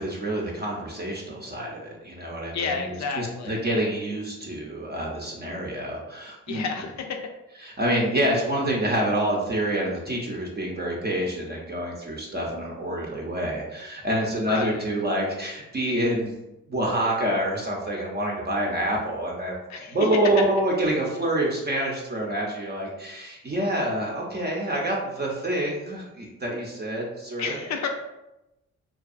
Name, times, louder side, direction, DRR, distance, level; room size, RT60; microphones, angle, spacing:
voice 1, 0.0-6.6 7.6-16.3 16.7-19.6 19.9-27.6, right 1 dB, 30° right, -2 dB, 0.6 m, -27 dB
voice 2, 2.5-3.6 6.5-7.2 14.5-14.9 19.7-20.0 27.4-27.9, left 5 dB, 60° left, 3 dB, 0.5 m, -30 dB
2.5 x 2.3 x 2.4 m, 0.94 s
supercardioid pair, 55°, 31 cm